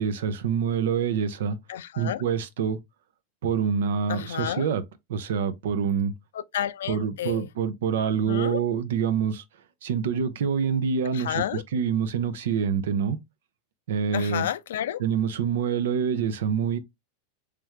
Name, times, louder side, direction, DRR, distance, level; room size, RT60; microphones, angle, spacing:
voice 1, 0.0-1.6 2.0-2.8 3.4-4.8 5.1-6.1 6.9-9.4 9.8-13.2 13.9-14.5 15.0-16.8, right 7 dB, 75° right, 0.6 m, -26 dB
voice 2, 1.7-2.2 4.1-4.7 6.3-7.5 8.1-8.6 11.1-11.6 14.1-15.0, left 10 dB, 75° left, 0.3 m, -31 dB
3.4 x 3.3 x 3.1 m
hypercardioid pair, 100°, 0 cm